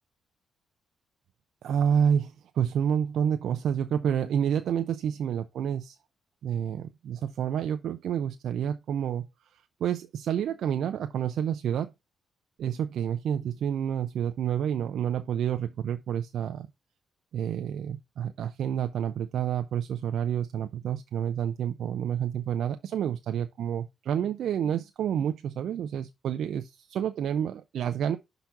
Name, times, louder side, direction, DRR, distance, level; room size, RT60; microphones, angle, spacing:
voice 1, 1.6-6.0 6.4-9.2 9.8-11.9 12.6-16.7 17.3-28.2, right 9 dB, 75° right, 0.5 m, -29 dB
5.8 x 3.9 x 5.7 m
supercardioid pair, 65°, 0 cm